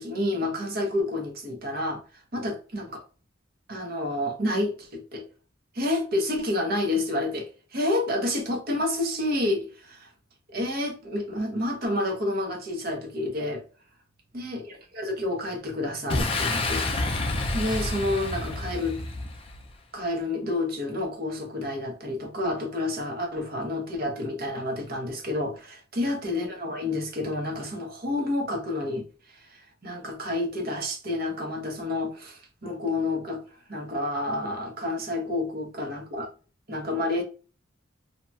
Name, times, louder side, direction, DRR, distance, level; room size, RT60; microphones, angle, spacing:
voice 1, 0.0-2.0 2.3-3.0 3.7-5.3 5.7-10.1 10.5-13.6 14.3-16.8 17.5-19.0 19.9-29.1 29.3-33.4 33.7-36.3 36.7-37.2, left 1 dB, 50° right, 0.9 m, -29 dB
Boom, 16.1-19.7, left 2 dB, 30° left, 0.4 m, -29 dB
2.8 x 2.2 x 2.6 m
head